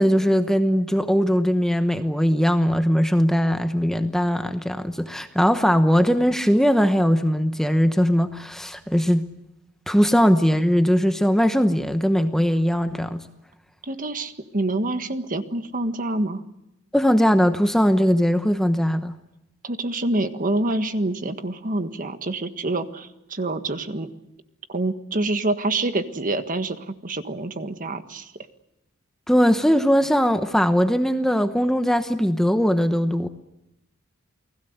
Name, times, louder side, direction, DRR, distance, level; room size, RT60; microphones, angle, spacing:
voice 1, 0.0-9.2 9.9-13.2 16.9-19.1 29.3-33.3, equal, ahead, 1.0 m, -20 dB
voice 2, 13.8-16.4 19.6-24.1 24.7-28.3, right 2 dB, 40° right, 1.6 m, -26 dB
29.5 x 20.0 x 8.0 m
head